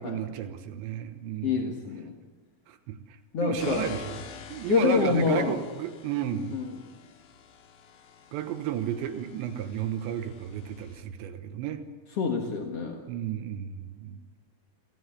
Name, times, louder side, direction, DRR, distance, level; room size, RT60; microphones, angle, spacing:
voice 1, 0.0-1.7 2.7-4.2 4.5-6.6 8.3-11.8 13.1-14.2, right 10 dB, 85° right, 8 dB, 3.5 m, -33 dB
voice 2, 1.4-2.1 3.3-3.9 4.7-5.6 6.5-6.9 12.2-13.0, left 5 dB, 50° left, 1 dB, 1.9 m, -27 dB
sound 1, 3.6-11.0, left 6 dB, 85° left, 4.5 m, -47 dB
27.5 x 16.0 x 9.8 m, 1.4 s
omnidirectional pair, 5.0 m